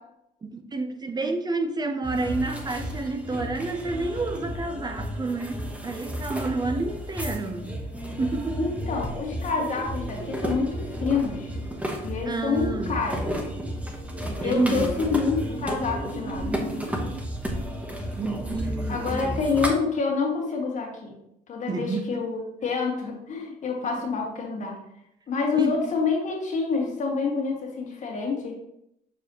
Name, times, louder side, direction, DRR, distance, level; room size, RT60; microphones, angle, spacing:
voice 1, 0.4-7.8 8.2-8.7 12.2-13.0 14.3-14.9 18.2-19.4 21.7-22.3 25.5-25.8, right 3 dB, 25° right, 0.6 m, -29 dB
sound 1, 2.0-19.7, equal, 10° right, 0.9 m, -32 dB
voice 2, 8.6-11.5 12.0-13.2 14.4-16.9 18.9-21.1 21.5-24.7 25.3-28.5, left 5 dB, 45° left, 1.8 m, -27 dB
6.8 x 4.7 x 3.0 m
cardioid pair, 110°, 17 cm